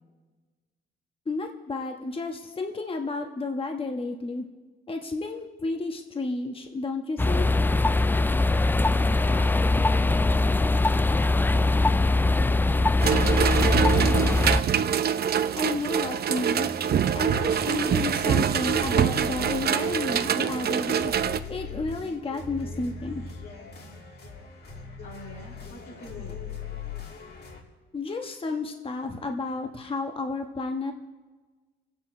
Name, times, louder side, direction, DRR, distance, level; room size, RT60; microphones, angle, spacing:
voice 1, 1.3-4.4 4.9-7.5 15.5-16.7 17.1-21.1 21.5-23.2 27.9-30.9, left 3 dB, 25° left, 4 dB, 1.3 m, -32 dB
sound 1, 7.2-14.6, left 2 dB, 10° left, 0.3 m, -22 dB
sound 2, 13.0-21.4, right 8 dB, 50° right, 0.8 m, -25 dB
sound 3, 16.3-27.6, left 4 dB, 55° left, 2.9 m, -40 dB
voice 2, 25.0-26.3, left 1 dB, 90° left, -2 dB, 5.8 m, -48 dB
24.5 x 9.0 x 4.9 m, 1.3 s
cardioid pair, 90°, 20 cm